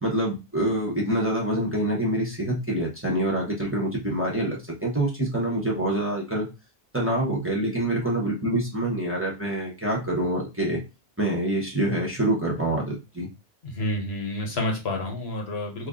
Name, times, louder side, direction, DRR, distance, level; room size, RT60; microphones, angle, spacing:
voice 1, 0.0-6.5 6.9-10.8 11.2-13.3, right 1 dB, 15° right, -3 dB, 0.7 m, -26 dB
voice 2, 13.6-15.9, left 1 dB, 80° left, 2 dB, 1.2 m, -29 dB
2.9 x 2.6 x 3.7 m, 0.28 s
omnidirectional pair, 1.0 m